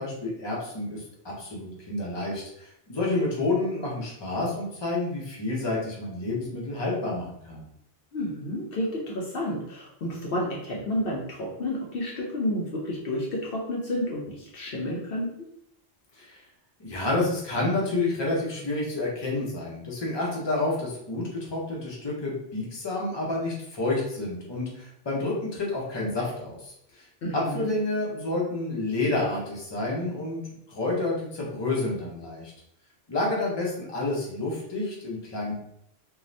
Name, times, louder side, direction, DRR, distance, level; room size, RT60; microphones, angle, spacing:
voice 1, 0.0-7.6 16.2-16.4 16.8-27.1 27.3-30.4 30.7-32.5 33.1-35.5, left 2 dB, 25° left, -4 dB, 0.7 m, -29 dB
voice 2, 8.1-15.3 27.2-27.7, left 1 dB, 65° left, -3 dB, 0.8 m, -30 dB
2.6 x 2.4 x 3.2 m, 0.74 s
omnidirectional pair, 1.1 m